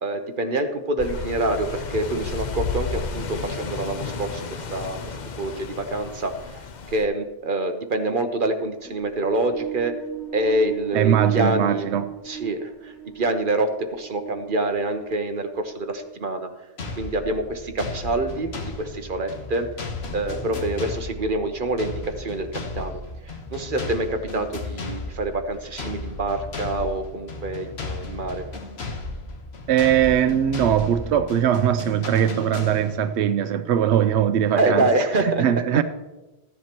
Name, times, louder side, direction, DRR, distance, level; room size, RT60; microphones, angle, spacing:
voice 1, 0.0-6.6 6.9-10.0 10.3-11.9 12.3-16.5 16.9-18.5 18.8-19.7 20.1-28.4 34.5-35.4, right 2 dB, 55° right, 7 dB, 1.0 m, -26 dB
sound 1, 1.0-7.1, left 4 dB, 50° left, 0.7 m, -32 dB
sound 2, 8.8-16.3, right 11 dB, ahead, 1.3 m, -37 dB
voice 2, 10.9-12.1 29.7-34.9 35.1-35.8, right 9 dB, 90° right, 11 dB, 0.9 m, -21 dB
sound 3, 16.8-33.2, left 3 dB, 75° left, 1.4 m, -35 dB
15.0 x 10.5 x 3.0 m, 1.1 s
omnidirectional pair, 1.1 m